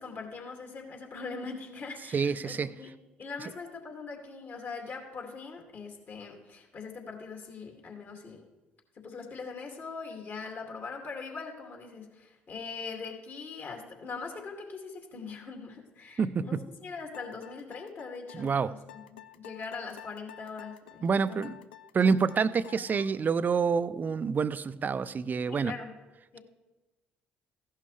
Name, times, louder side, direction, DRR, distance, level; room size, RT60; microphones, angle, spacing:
voice 1, 0.0-2.9 3.2-8.4 9.0-19.0 19.3-21.0 21.3-21.5 25.5-25.9 26.3-26.4, left 4 dB, 45° left, 2 dB, 2.6 m, -41 dB
voice 2, 2.1-2.7 16.2-16.6 18.3-18.7 21.0-21.6 21.9-25.7, right 5 dB, 35° right, 16 dB, 0.5 m, -27 dB
sound 1, 17.1-23.2, left 11 dB, 85° left, 0.4 m, -50 dB
15.5 x 11.5 x 3.3 m, 1.1 s
hypercardioid pair, 55°, 5 cm